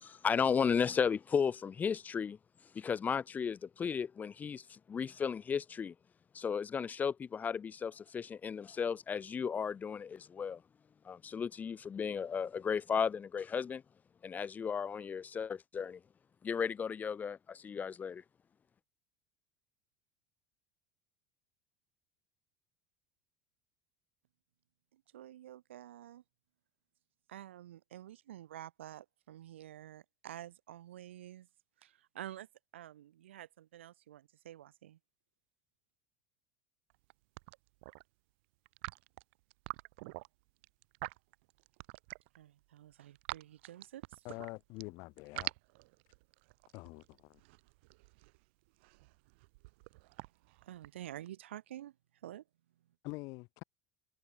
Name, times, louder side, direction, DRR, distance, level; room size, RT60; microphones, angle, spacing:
voice 1, 0.0-2.4 2.7-5.9 6.3-10.6 11.0-13.8 14.2-16.0 16.4-18.2, left 6 dB, 25° left, 0.5 m, -34 dB
voice 2, 24.9-26.2 27.3-31.5 31.8-32.5 32.7-35.0 42.4-44.4 50.6-51.9 52.2-52.4, right 12 dB, 90° right, 1.8 m, -49 dB
sound 1, 36.9-37.1 37.4-38.0 38.7-42.4 42.8-44.8 45.2-51.3, right 25 dB, 75° right, 0.9 m, -46 dB
voice 3, 44.2-45.5 46.7-47.4 53.0-53.6, left 25 dB, 65° left, 0.8 m, -45 dB
hypercardioid pair, 95°, 6 cm